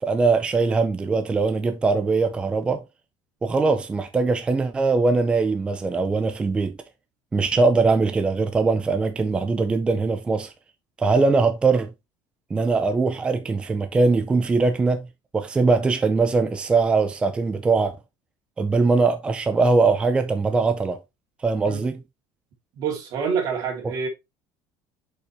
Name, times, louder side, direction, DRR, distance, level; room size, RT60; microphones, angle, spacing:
voice 1, 0.0-2.8 3.4-6.8 7.3-10.5 11.0-11.9 12.5-15.1 15.3-17.9 18.6-21.0 21.4-22.0, right 4 dB, 15° right, 0.5 m, -21 dB
voice 2, 22.8-24.1, right 6 dB, 45° right, 2.6 m, -27 dB
7.0 x 5.3 x 3.1 m
cardioid pair, 170°, 8 cm